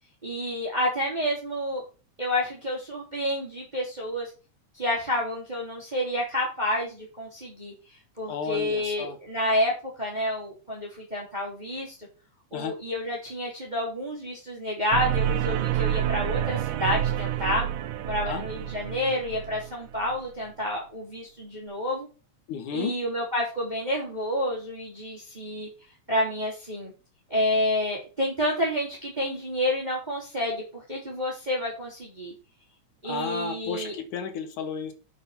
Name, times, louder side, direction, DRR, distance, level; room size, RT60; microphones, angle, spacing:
voice 1, 0.2-1.8 2.2-4.3 4.7-7.7 8.2-9.7 10.0-12.0 12.5-17.7 18.0-22.1 22.7-25.7 26.1-26.9 27.3-32.3 33.0-33.9, left 1 dB, 15° right, -4 dB, 3.8 m, -29 dB
voice 2, 8.3-9.2 12.5-12.7 18.2-18.4 22.5-22.9 33.0-34.9, left 6 dB, 80° left, 8 dB, 3.0 m, -32 dB
sound 1, 14.9-20.2, right 11 dB, 85° right, 2.4 m, -28 dB
7.9 x 6.9 x 5.9 m, 0.33 s
omnidirectional pair, 3.5 m